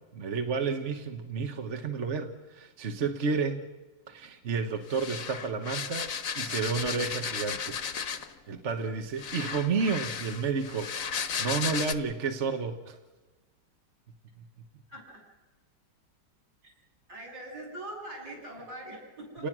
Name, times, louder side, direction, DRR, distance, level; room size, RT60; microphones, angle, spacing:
voice 1, 0.1-3.6 4.1-6.1 6.4-8.2 8.5-10.9 11.4-13.0 19.4-19.5, right 5 dB, 45° right, 6 dB, 1.4 m, -31 dB
sound 1, 4.9-8.4 9.2-11.9, left 7 dB, 50° left, 1.4 m, -34 dB
voice 2, 14.9-15.2 16.6-16.7 17.1-19.5, right 1 dB, 60° right, -2 dB, 8.7 m, -42 dB
29.5 x 19.0 x 6.2 m, 1.2 s
omnidirectional pair, 2.0 m